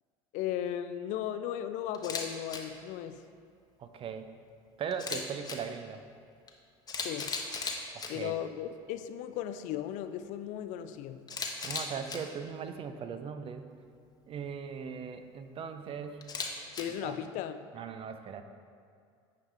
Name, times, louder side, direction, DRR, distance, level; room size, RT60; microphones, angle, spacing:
voice 1, 0.3-3.2 5.1-5.2 7.0-7.3 8.1-11.2 16.8-17.6, left 10 dB, 65° left, 10 dB, 0.4 m, -36 dB
Camera, 1.9-2.2 2.5-2.6 4.9-5.6 6.5-6.6 6.9-8.1 11.3-12.2 16.2-16.8, left 5 dB, 30° left, 1.0 m, -36 dB
voice 2, 3.8-4.3 4.8-6.0 7.9-8.4 11.6-13.7 14.3-16.3 17.0-17.2 17.7-18.4, right 6 dB, 40° right, 8 dB, 0.5 m, -39 dB
9.4 x 4.9 x 3.4 m, 2.3 s
hypercardioid pair, 80°, 14 cm